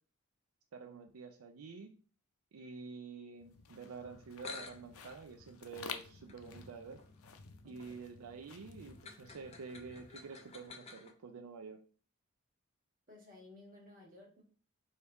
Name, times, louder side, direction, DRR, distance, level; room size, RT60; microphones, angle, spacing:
voice 1, 0.7-2.0 2.5-7.0 7.6-11.8, right 4 dB, 85° right, 4 dB, 0.4 m, -48 dB
sound 1, 3.4-10.7, left 6 dB, 85° left, 0.5 m, -52 dB
sound 2, 4.1-4.2 4.4-11.1, left 5 dB, 30° left, 0.4 m, -53 dB
voice 2, 7.6-8.1 13.1-14.4, left 2 dB, 40° right, -2 dB, 1.4 m, -57 dB
3.4 x 2.8 x 4.6 m, 0.40 s
head